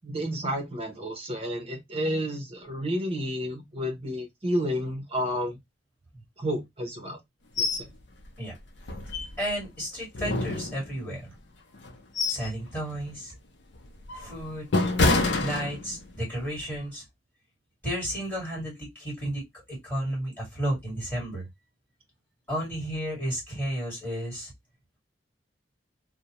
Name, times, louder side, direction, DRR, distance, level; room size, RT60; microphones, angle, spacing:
voice 1, 0.0-5.6 6.4-7.2 7.6-7.9, equal, 30° right, 0.8 m, -31 dB
sound 1, 7.6-7.9 8.2-8.3 8.8-9.6 10.1-11.2 11.7-12.6 12.9-13.2 13.7-16.2 16.6-16.8, left 3 dB, 75° left, 0.5 m, -27 dB
voice 2, 9.4-11.3 12.3-13.3 14.1-14.7 15.4-17.0 17.8-19.4 19.7-21.5 22.5-24.5, equal, 15° left, 1.7 m, -32 dB
2.7 x 2.1 x 2.8 m
head